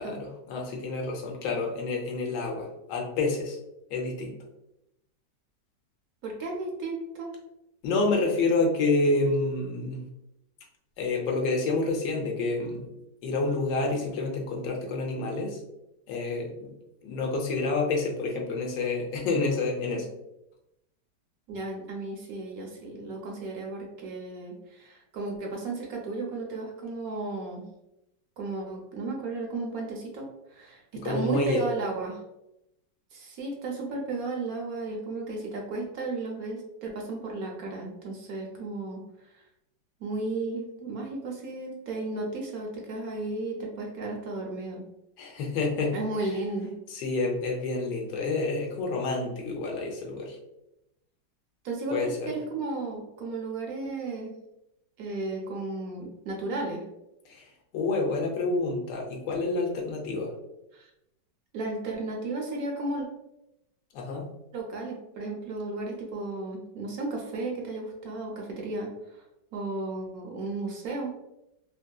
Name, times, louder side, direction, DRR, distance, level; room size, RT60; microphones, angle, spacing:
voice 1, 0.0-3.6 3.9-4.4 7.8-10.0 11.0-12.9 13.2-15.6 16.1-16.7 17.0-20.1 31.0-31.6 45.2-46.0 46.9-50.4 51.9-52.3 57.3-60.3 63.9-64.3, left 3 dB, 80° left, 0 dB, 1.4 m, -28 dB
voice 2, 6.2-7.3 21.5-27.6 28.4-32.2 33.1-39.4 40.0-44.8 45.9-46.7 51.6-54.4 55.0-56.8 60.7-60.9 61.5-63.1 64.5-69.2 69.5-71.1, right 2 dB, 65° right, -1 dB, 1.0 m, -34 dB
3.2 x 2.6 x 2.2 m, 0.86 s
omnidirectional pair, 1.9 m